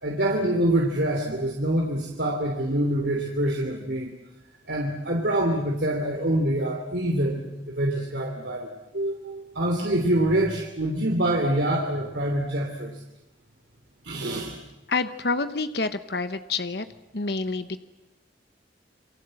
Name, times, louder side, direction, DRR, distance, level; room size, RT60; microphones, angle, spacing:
voice 1, 0.0-4.1 4.6-12.9 14.0-14.5, right 1 dB, 70° right, 0 dB, 3.2 m, -25 dB
voice 2, 14.9-16.9 17.1-17.8, left 3 dB, 60° left, 11 dB, 1.0 m, -28 dB
28.5 x 24.0 x 7.8 m, 0.96 s
head